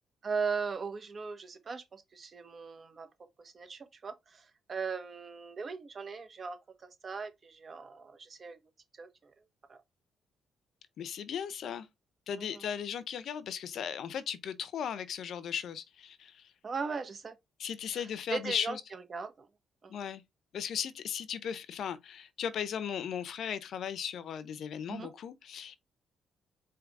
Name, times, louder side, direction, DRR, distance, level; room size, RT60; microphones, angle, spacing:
voice 1, 0.2-3.1 3.4-6.6 6.8-8.6 9.0-9.3 9.7-9.8 12.4-12.6 16.6-17.4 17.9-18.0 18.3-19.5 19.8-19.9 24.9-25.1, right 5 dB, 40° right, 1.2 m, -38 dB
voice 2, 11.0-11.9 12.3-16.4 17.6-18.8 19.9-20.2 20.5-25.8, left 8 dB, 65° left, 0.7 m, -37 dB
4.7 x 3.0 x 3.7 m
cardioid pair, 90°, 0 cm